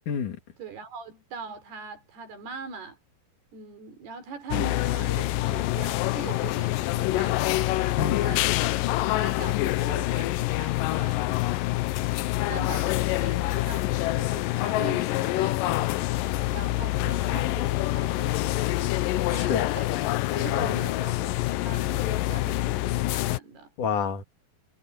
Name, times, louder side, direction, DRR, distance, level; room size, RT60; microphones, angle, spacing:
voice 1, 0.1-0.4 8.0-8.2 19.3-19.7 20.5-20.7 23.8-24.2, left 6 dB, 55° left, 3.8 m, -28 dB
voice 2, 0.6-3.0 3.5-7.8 8.2-8.5 9.0-11.4 12.5-16.0 16.5-19.0 19.3-23.7, right 5 dB, 80° right, 6.4 m, -41 dB
sound 1, 4.5-23.4, left 17 dB, 85° left, 2.0 m, -26 dB
omnidirectional pair, 4.5 m